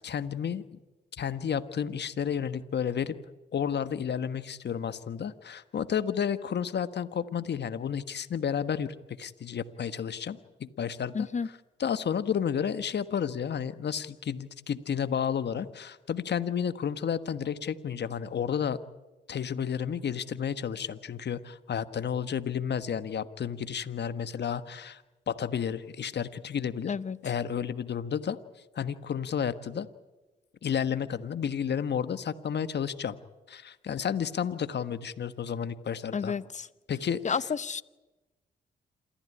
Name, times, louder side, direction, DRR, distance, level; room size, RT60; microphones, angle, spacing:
voice 1, 0.0-0.8 1.2-3.2 3.5-11.3 11.8-18.8 19.3-26.9 27.2-28.4 28.7-29.9 30.6-33.2 33.5-36.3 36.9-37.4, left 8 dB, 60° left, 12 dB, 1.4 m, -31 dB
voice 2, 11.1-11.5 26.9-27.2 36.1-36.7 37.2-37.8, left 6 dB, 35° left, 17 dB, 0.9 m, -31 dB
27.5 x 14.5 x 9.9 m, 1.1 s
supercardioid pair, 50°, 20 cm